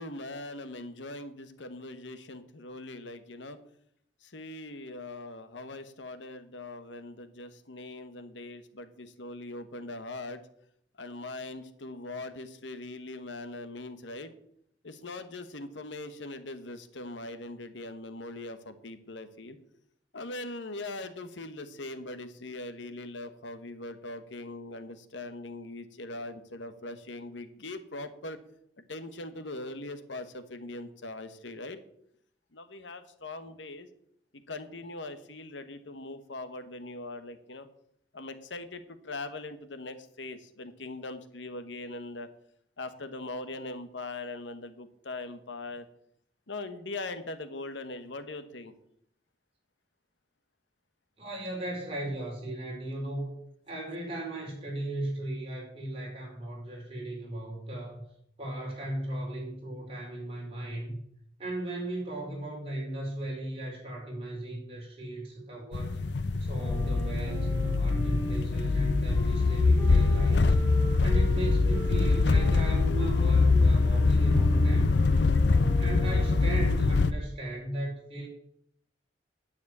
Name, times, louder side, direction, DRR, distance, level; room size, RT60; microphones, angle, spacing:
voice 1, 0.0-3.6 4.2-10.4 11.0-14.3 14.8-19.6 20.1-28.4 28.9-31.8 32.5-33.9 34.5-37.7 38.1-42.3 42.8-45.9 46.5-48.7, left 2 dB, 85° left, 10 dB, 1.2 m, -41 dB
voice 2, 51.2-53.4 53.7-58.0 58.4-61.0 61.4-66.0 66.4-70.6 71.0-75.1 75.8-78.3, right 1 dB, 30° right, -2 dB, 4.7 m, -37 dB
sound 1, 65.7-77.1, left 3 dB, 70° left, 0.6 m, -24 dB
Wind instrument woodwind instrument, 66.5-76.6, right 2 dB, 5° left, 5.4 m, -41 dB
9.8 x 7.2 x 8.5 m, 0.71 s
head